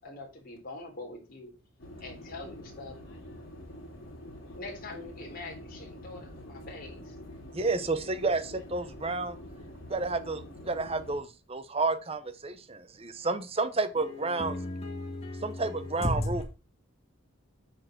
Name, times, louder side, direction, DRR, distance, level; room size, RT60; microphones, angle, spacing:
voice 1, 0.0-1.5 2.0-3.0 4.5-7.1, left 2 dB, 45° left, 3.8 m, -44 dB
sound 1, 1.8-11.2, left 1 dB, 75° left, 3.5 m, -46 dB
voice 2, 7.5-9.4 9.9-14.6 15.4-16.4, right 3 dB, 30° right, 0.9 m, -31 dB
voice 3, 14.0-16.4, left 1 dB, 30° left, 2.1 m, -34 dB
8.8 x 4.7 x 6.2 m
head